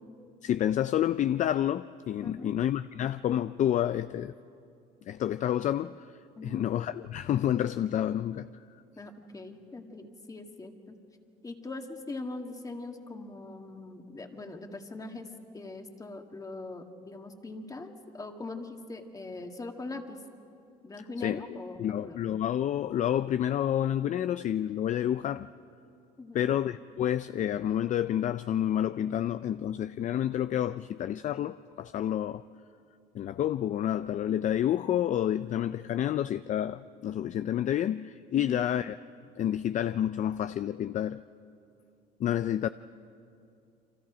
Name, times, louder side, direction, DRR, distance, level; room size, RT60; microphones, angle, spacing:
voice 1, 0.4-4.3 5.1-6.1 6.4-8.5 21.2-21.4 21.8-25.5 26.3-32.4 33.1-39.0 39.4-41.2 42.2-42.7, left 11 dB, 45° left, 0.4 m, -29 dB
voice 2, 2.2-2.5 6.4-6.7 9.0-11.0 11.4-20.2 20.8-22.2 26.2-26.5 38.3-38.7, left 2 dB, 20° left, 1.9 m, -41 dB
29.5 x 24.5 x 5.0 m
cardioid pair, 110°, 17 cm